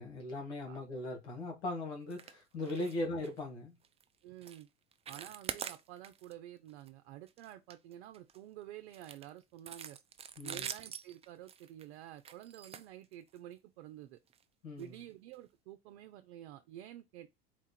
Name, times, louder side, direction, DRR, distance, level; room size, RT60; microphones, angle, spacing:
voice 1, 0.0-3.8 10.4-10.7 14.6-15.0, left 2 dB, 85° left, 1.8 m, -39 dB
sound 1, 2.1-2.4 2.6-3.0 3.2-3.4 3.8-4.0 4.4-4.6 4.9-6.3 6.7-6.9 7.3-8.4 8.9-13.5 14.3-14.4 14.8-14.9 15.3-15.4, right 8 dB, 20° right, 0.4 m, -45 dB
voice 2, 4.2-4.7 5.1-10.0 10.4-14.2 14.8-17.3, right 12 dB, 70° right, 0.6 m, -50 dB
4.5 x 2.5 x 4.2 m
hypercardioid pair, 90°, 33 cm